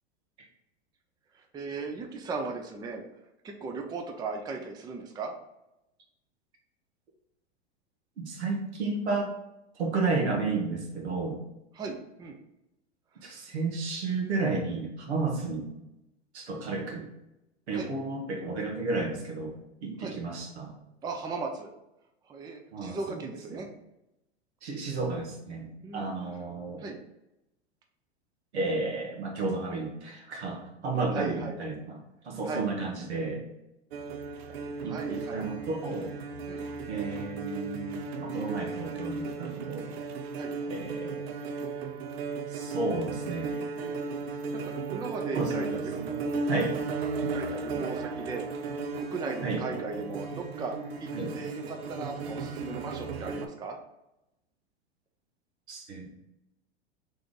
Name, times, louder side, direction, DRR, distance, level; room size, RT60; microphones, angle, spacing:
voice 1, 1.3-3.0 3.4-5.3 11.7-12.4 17.7-17.9 20.0-20.2 21.0-21.7 22.3-23.7 25.8-26.1 26.8-27.0 31.1-31.6 32.4-32.7 34.8-35.5 36.5-36.7 40.4-40.5 43.8-45.9 47.3-48.5 49.0-50.7 51.0-53.8, right 4 dB, 10° right, 3 dB, 0.4 m, -37 dB
voice 2, 8.2-9.3 9.8-11.4 13.2-15.7 16.3-17.1 17.7-19.5 19.8-20.7 22.7-23.2 23.5-23.6 24.6-26.8 28.5-32.0 32.2-33.4 34.8-36.1 36.9-39.9 40.7-41.3 42.5-43.6 45.3-46.1 46.5-46.7 47.2-47.3 47.7-47.8 49.4-49.6 51.1-51.3 55.7-56.1, right 3 dB, 80° right, 0 dB, 1.3 m, -32 dB
sound 1, 33.9-53.5, right 4 dB, 65° right, 0.6 m, -35 dB
3.8 x 3.4 x 3.6 m, 0.90 s
hypercardioid pair, 100°, 33 cm